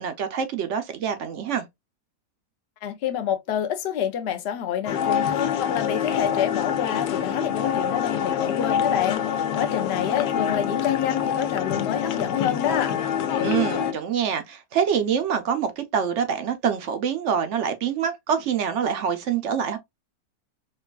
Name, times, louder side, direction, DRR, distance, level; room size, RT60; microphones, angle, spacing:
voice 1, 0.0-1.6 13.4-19.8, right 7 dB, 65° right, 0.7 m, -25 dB
voice 2, 2.8-12.9, left 9 dB, 60° left, 0.7 m, -28 dB
sound 1, 4.9-13.9, left 9 dB, 85° left, 1.2 m, -26 dB
4.5 x 2.3 x 2.3 m
omnidirectional pair, 1.7 m